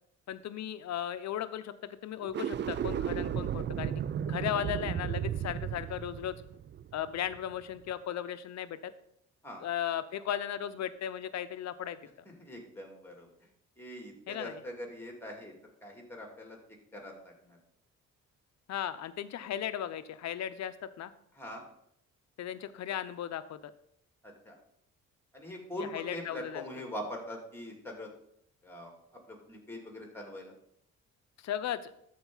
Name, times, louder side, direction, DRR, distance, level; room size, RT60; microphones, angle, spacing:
voice 1, 0.3-4.0 4.3-6.4 6.9-8.9 9.6-12.0 14.3-14.6 18.7-21.1 22.4-23.7 25.9-26.6 31.4-31.9, left 10 dB, 60° left, 12 dB, 0.7 m, -36 dB
sound 1, 2.2-7.5, right 9 dB, 40° right, 0.4 m, -34 dB
voice 2, 12.4-13.3 13.8-15.5 15.8-16.6 16.9-17.6 21.4-21.6 24.2-24.6 25.3-28.1 28.6-28.9 29.3-30.5, left 1 dB, 10° left, 1 dB, 2.6 m, -42 dB
13.0 x 4.7 x 4.0 m, 0.71 s
cardioid pair, 90°, 30 cm